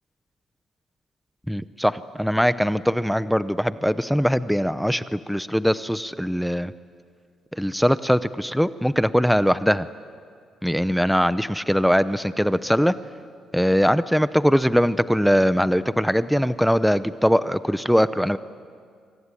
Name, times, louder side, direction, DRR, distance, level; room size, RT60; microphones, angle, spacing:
voice 1, 1.5-6.7 7.5-9.9 10.6-12.9 13.5-18.4, equal, ahead, 14 dB, 0.7 m, -21 dB
25.5 x 23.5 x 9.9 m, 2.2 s
cardioid pair, 90°, 0 cm